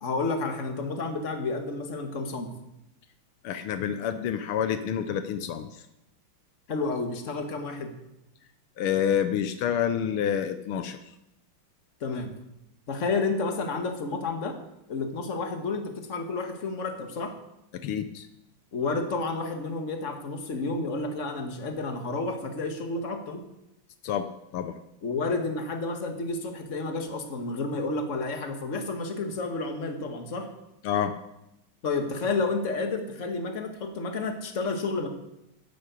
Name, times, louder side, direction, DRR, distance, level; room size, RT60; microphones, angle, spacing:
voice 1, 0.0-2.5 6.7-7.9 12.0-12.3 12.9-14.6 14.9-17.3 18.7-23.4 25.0-30.5 31.8-35.1, left 3 dB, 35° left, 5 dB, 1.9 m, -30 dB
voice 2, 3.4-5.8 8.8-11.0 17.7-18.3 24.0-24.3 24.5-24.8 30.8-31.1, left 9 dB, 80° left, 10 dB, 1.7 m, -28 dB
11.0 x 10.5 x 8.3 m, 0.89 s
omnidirectional pair, 2.4 m